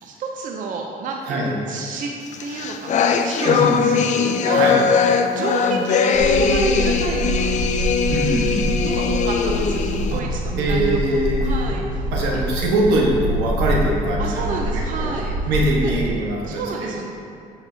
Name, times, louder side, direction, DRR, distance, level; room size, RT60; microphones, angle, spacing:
voice 1, 0.0-2.1 2.4-4.7 5.3-7.6 8.8-12.4 14.2-15.4 15.8-16.0 16.5-17.1, right 4 dB, 50° right, 1 dB, 0.6 m, -30 dB
sound 1, 2.3-10.2, left 6 dB, 45° left, 0.4 m, -20 dB
voice 2, 3.4-4.0 4.5-4.8 8.1-8.7 10.1-10.2 10.6-11.8 12.1-15.1 15.5-17.0, right 1 dB, 90° right, -2 dB, 1.2 m, -22 dB
sound 2, 6.1-16.1, right 1 dB, 70° right, 1.4 m, -25 dB
8.0 x 5.9 x 2.7 m, 2.4 s
cardioid pair, 110°, 17 cm